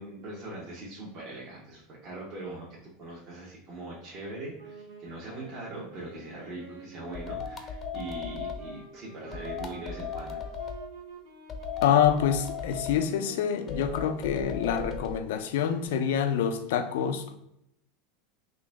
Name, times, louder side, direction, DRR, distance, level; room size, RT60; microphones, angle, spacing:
voice 1, 0.0-2.7 3.0-10.7, right 1 dB, 45° right, 1.1 m, -41 dB
sound 1, 4.6-14.9, right 4 dB, 80° right, 1.1 m, -48 dB
sound 2, 7.1-8.7 9.3-10.8 11.5-13.0 13.7-15.2, left 6 dB, 30° left, 0.6 m, -37 dB
voice 2, 11.8-17.4, left 8 dB, 80° left, 0.4 m, -26 dB
3.8 x 2.6 x 3.4 m
supercardioid pair, 120°, 0 cm